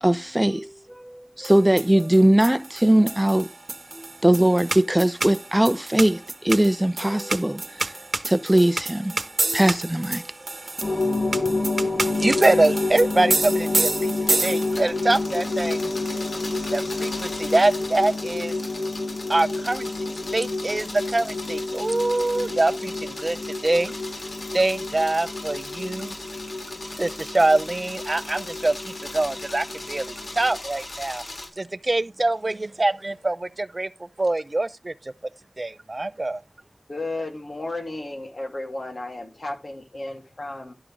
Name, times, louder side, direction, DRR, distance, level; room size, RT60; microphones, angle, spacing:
voice 1, 0.0-3.5 4.0-7.9 8.2-9.2 9.5-10.2 11.0-11.6, right 1 dB, 15° right, 0.8 m, -21 dB
sound 1, 1.4-15.0, right 3 dB, 70° right, 1.0 m, -29 dB
sound 2, 10.8-30.6, left 3 dB, 50° left, 1.7 m, -29 dB
voice 2, 11.8-15.9 16.7-18.5 19.3-19.9 20.3-23.4 23.6-23.9 24.5-26.1 27.0-31.2 31.6-33.9 34.2-34.9 35.6-36.4, right 2 dB, 50° right, 0.6 m, -24 dB
sound 3, 14.0-31.5, left 2 dB, 90° left, 3.4 m, -38 dB
voice 3, 36.9-40.7, left 2 dB, 65° left, 2.8 m, -33 dB
11.5 x 6.0 x 4.7 m
wide cardioid pair, 60°, 0 cm